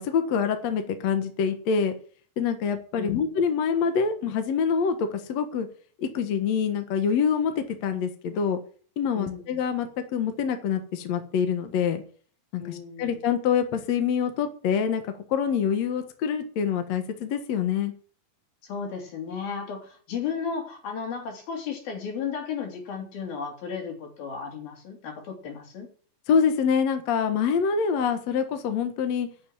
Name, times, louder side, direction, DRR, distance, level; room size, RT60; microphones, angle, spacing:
voice 1, 0.0-1.9 2.4-5.7 6.0-8.6 9.0-12.0 12.5-17.9 26.3-29.3, left 6 dB, 60° left, 7 dB, 2.3 m, -25 dB
voice 2, 9.2-9.5 12.6-13.2 18.6-25.9, left 6 dB, 80° left, 2 dB, 5.2 m, -34 dB
11.5 x 6.7 x 9.0 m, 0.43 s
omnidirectional pair, 4.1 m